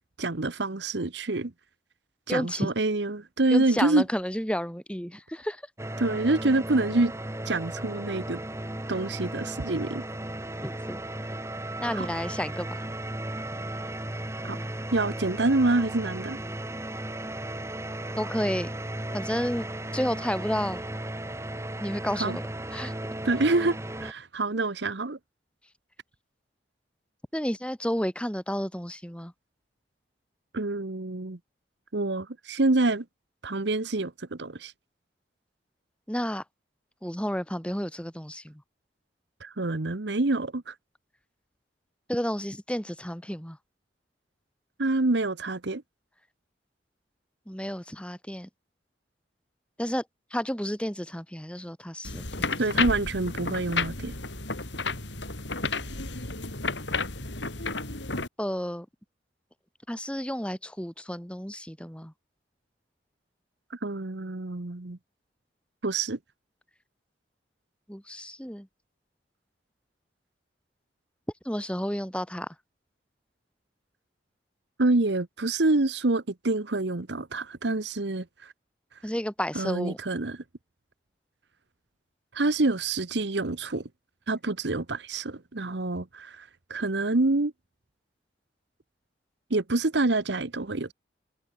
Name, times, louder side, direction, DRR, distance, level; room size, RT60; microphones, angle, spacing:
voice 1, 0.2-1.5 2.3-4.0 6.0-7.1 7.4-8.4 8.9-10.0 11.9-12.1 14.4-14.6 14.9-16.4 22.2-22.4 23.2-25.2 30.5-31.4 31.9-33.0 33.4-34.7 39.4-40.7 44.8-45.8 52.6-54.1 63.8-65.0 65.8-66.2 74.8-78.5 79.5-80.4 82.3-83.8 84.3-87.5 89.5-90.9, right 2 dB, 70° right, 1.1 m, -27 dB
voice 2, 2.3-2.7 3.5-5.6 10.6-11.0 11.8-12.8 18.2-18.7 19.1-19.7 19.9-20.8 21.8-22.4 22.7-22.9 27.3-29.3 36.1-36.4 37.0-38.6 42.1-43.6 47.5-48.5 49.8-50.0 50.3-52.5 58.4-58.9 59.9-62.1 67.9-68.7 71.4-72.5 79.0-80.0, equal, 5° left, 4.1 m, -31 dB
sound 1, 5.8-24.1, right 1 dB, 15° right, 1.6 m, -35 dB
sound 2, 52.0-58.3, left 4 dB, 75° left, 5.5 m, -32 dB
head